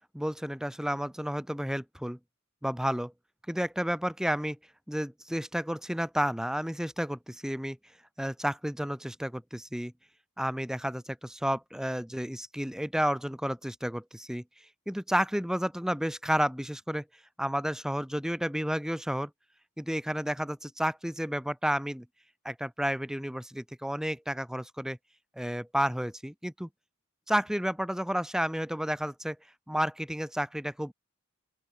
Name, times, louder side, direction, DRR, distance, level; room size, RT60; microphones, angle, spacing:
voice 1, 0.1-2.2 2.6-3.1 3.5-4.6 4.9-7.8 8.2-9.9 10.4-14.4 14.9-17.0 17.4-19.3 19.8-22.1 22.4-25.0 25.4-26.7 27.3-29.4 29.7-30.9, equal, 5° right, 1.4 m, -31 dB
open air
head